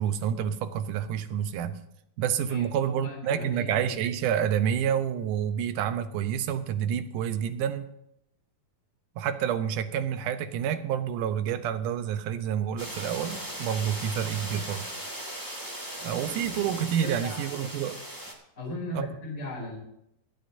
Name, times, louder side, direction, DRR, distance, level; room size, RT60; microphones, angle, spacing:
voice 1, 0.0-1.8 2.2-7.9 9.2-14.9 16.0-18.0 19.0-19.1, right 9 dB, 80° right, 10 dB, 2.2 m, -28 dB
voice 2, 2.5-3.9 17.0-17.4 18.6-19.8, left 2 dB, 20° left, -3 dB, 3.1 m, -37 dB
noise rye, 12.8-18.3, right 1 dB, 15° right, 0.6 m, -38 dB
25.5 x 8.6 x 2.6 m, 0.78 s
omnidirectional pair, 3.7 m